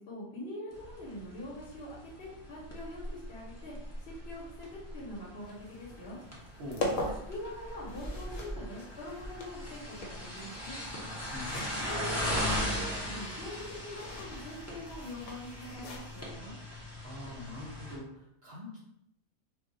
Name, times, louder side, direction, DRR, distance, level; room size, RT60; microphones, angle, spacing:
voice 1, 0.0-3.7 4.0-6.2 6.8-10.8 11.7-16.6, left 1 dB, 55° left, -5 dB, 1.0 m, -44 dB
sound 1, 0.7-18.0, equal, 25° left, 0.3 m, -39 dB
sound 2, 5.4-16.2, left 1 dB, 85° left, 1.1 m, -42 dB
voice 2, 6.6-6.9 11.3-11.7 17.0-18.8, left 1 dB, 60° right, -5 dB, 0.7 m, -43 dB
2.3 x 2.2 x 3.8 m, 0.76 s
omnidirectional pair, 1.5 m